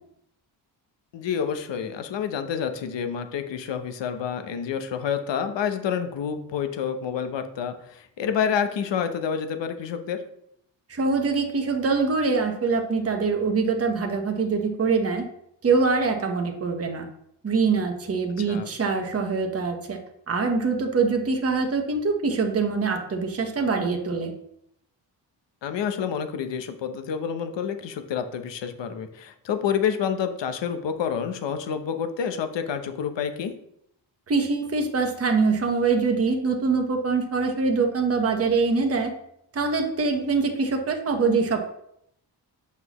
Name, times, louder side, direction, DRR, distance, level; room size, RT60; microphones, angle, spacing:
voice 1, 1.1-10.2 18.4-18.7 25.6-33.5, left 7 dB, 75° left, 8 dB, 0.9 m, -28 dB
voice 2, 10.9-15.2 15.6-17.1 17.4-20.0 20.3-24.3 34.3-39.1 39.5-41.6, right 4 dB, 35° right, 3 dB, 1.1 m, -24 dB
7.7 x 5.8 x 3.0 m, 0.74 s
cardioid pair, 115°, 44 cm